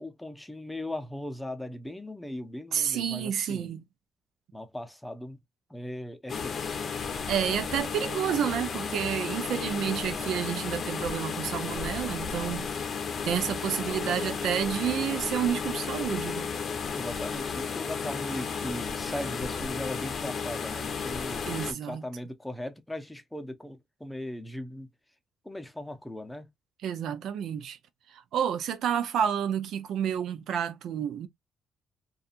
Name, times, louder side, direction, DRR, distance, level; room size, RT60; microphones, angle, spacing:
voice 1, 0.0-3.7 4.5-5.4 5.7-6.8 16.9-24.9 25.4-26.5, left 1 dB, 5° left, 0.6 m, -38 dB
voice 2, 2.7-3.8 7.3-12.7 13.2-16.5 21.5-22.0 26.8-27.8 28.1-31.3, right 9 dB, 75° right, 0.4 m, -30 dB
sound 1, 6.3-21.7, left 5 dB, 50° left, 0.6 m, -33 dB
2.7 x 2.3 x 2.4 m
cardioid pair, 90°, 0 cm